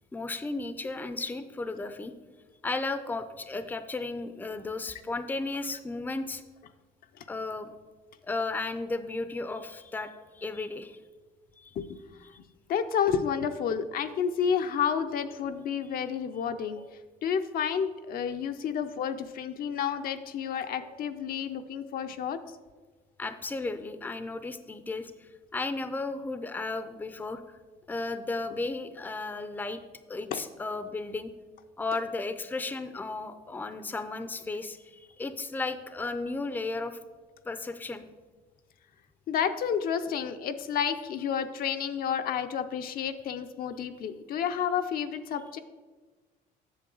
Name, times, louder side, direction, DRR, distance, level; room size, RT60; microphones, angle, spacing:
voice 1, 0.1-2.1 2.6-6.4 7.3-7.7 8.2-11.0 11.6-11.7 23.2-27.4 27.9-29.8 30.1-31.3 31.8-37.0 37.4-38.0, left 3 dB, 10° left, 10 dB, 0.5 m, -34 dB
voice 2, 12.7-16.8 17.2-22.4 30.3-30.4 39.3-45.6, left 7 dB, 60° left, 8 dB, 0.5 m, -30 dB
8.4 x 6.6 x 3.9 m, 1.4 s
cardioid pair, 110°, 17 cm